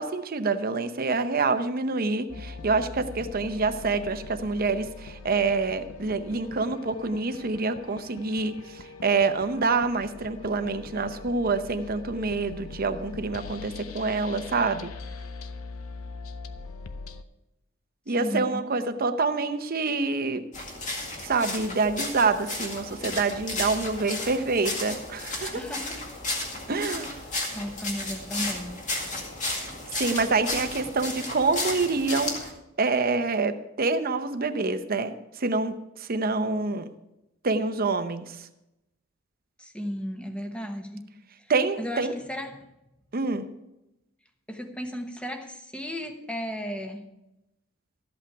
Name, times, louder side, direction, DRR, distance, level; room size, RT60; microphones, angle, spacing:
voice 1, 0.0-14.9 18.1-20.5 21.2-25.6 26.7-27.2 29.5-32.5 32.8-36.9 37.4-38.4 41.5-42.1 43.1-43.5, right 3 dB, 45° right, 9 dB, 0.8 m, -27 dB
sound 1, 2.3-17.2, left 4 dB, 85° left, 0.7 m, -42 dB
voice 2, 18.1-18.6 25.5-26.0 26.7-27.0 27.5-28.8 39.6-41.0 41.8-42.7 44.5-47.0, equal, 5° left, 5 dB, 1.0 m, -35 dB
sound 2, 20.5-32.5, left 2 dB, 35° left, 2.1 m, -33 dB
13.5 x 8.4 x 4.7 m, 0.91 s
head